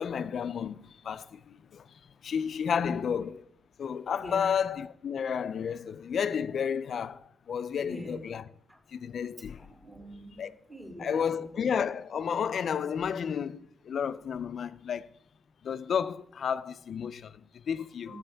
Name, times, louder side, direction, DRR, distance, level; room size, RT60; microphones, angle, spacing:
voice 1, 0.0-3.4 3.8-8.4 8.9-9.7 10.4-10.5 11.0-15.1 15.6-18.2, left 7 dB, 65° left, 0.5 m, -32 dB
voice 2, 2.8-3.1 4.2-4.6 7.8-8.2 8.7-8.8 9.6-11.5 18.1-18.2, equal, 15° right, 2.6 m, -44 dB
17.0 x 7.7 x 3.5 m
wide cardioid pair, 145°, 0 cm